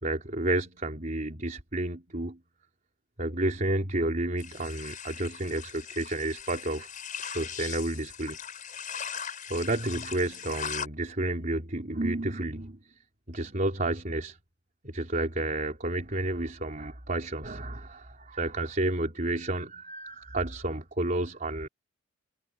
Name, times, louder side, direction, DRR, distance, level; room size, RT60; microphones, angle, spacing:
voice 1, 0.0-2.4 3.2-6.9 7.2-8.4 9.5-12.8 13.3-14.4 14.8-21.7, right 1 dB, 40° right, 3.7 m, -31 dB
sound 1, 4.4-10.9, left 7 dB, 40° left, 5.7 m, -39 dB
head